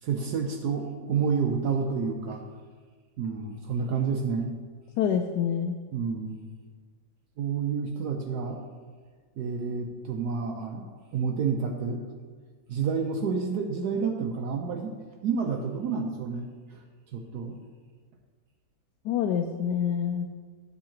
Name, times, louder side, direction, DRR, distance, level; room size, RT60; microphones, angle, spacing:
voice 1, 0.0-2.4 3.2-4.5 5.9-6.4 7.4-8.7 9.4-12.1 12.7-15.0 15.2-16.8 17.1-17.6, right 5 dB, 70° right, 2 dB, 1.2 m, -29 dB
voice 2, 5.0-5.8 19.0-20.4, left 8 dB, 80° left, 4 dB, 1.2 m, -27 dB
10.5 x 3.9 x 7.2 m, 1.5 s
omnidirectional pair, 1.8 m